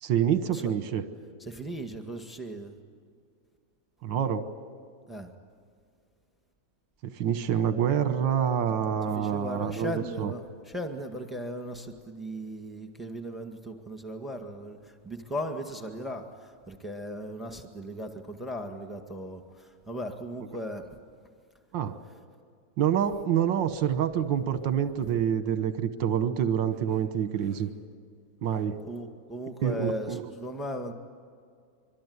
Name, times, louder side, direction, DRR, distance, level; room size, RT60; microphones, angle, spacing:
voice 1, 0.0-1.0 4.0-4.4 7.0-10.3 21.7-22.0 22.8-27.7 28.4-28.8 29.6-30.2, right 9 dB, 65° right, 11 dB, 1.1 m, -27 dB
voice 2, 1.4-2.8 5.1-5.3 9.1-20.9 27.5-27.6 28.8-30.9, equal, ahead, 5 dB, 0.9 m, -37 dB
26.0 x 23.5 x 9.6 m, 2.2 s
omnidirectional pair, 3.4 m